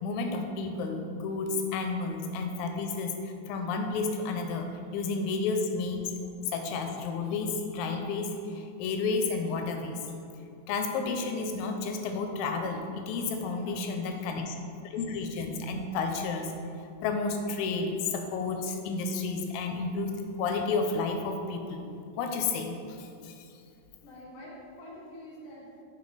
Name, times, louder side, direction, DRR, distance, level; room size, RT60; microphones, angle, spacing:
voice 1, 0.0-4.7 4.9-6.1 6.5-8.3 8.8-10.0 10.7-14.6 14.8-16.5 17.0-20.1 20.4-21.8 22.2-23.0 23.2-23.3, left 4 dB, 90° left, 5 dB, 2.4 m, -31 dB
voice 2, 13.5-14.4 24.0-25.8, left 1 dB, 40° left, -5 dB, 1.2 m, -47 dB
7.0 x 4.0 x 4.9 m, 2.5 s
omnidirectional pair, 4.1 m